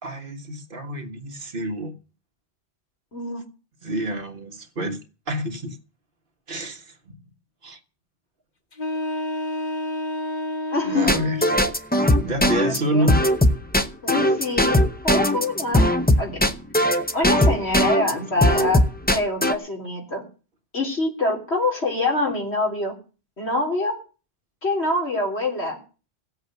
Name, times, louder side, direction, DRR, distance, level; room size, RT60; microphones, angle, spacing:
voice 1, 0.0-1.9 3.8-5.0 5.3-5.8 6.5-7.2 7.6-7.8 10.8-11.4 12.2-13.2, right 1 dB, 55° right, 1.6 m, -28 dB
voice 2, 3.1-3.4 10.7-11.1 12.6-13.1 14.0-14.8 15.0-15.8 16.2-16.4 17.1-18.8 19.1-20.3 20.7-22.9 23.4-24.0 24.6-25.8, left 2 dB, 85° left, 3.9 m, -25 dB
sound 1, 8.7-11.7, left 1 dB, 45° left, 1.2 m, -29 dB
sound 2, 11.1-18.1 18.4-19.5, left 1 dB, 10° left, 0.7 m, -19 dB
16.5 x 7.9 x 6.7 m
omnidirectional pair, 1.1 m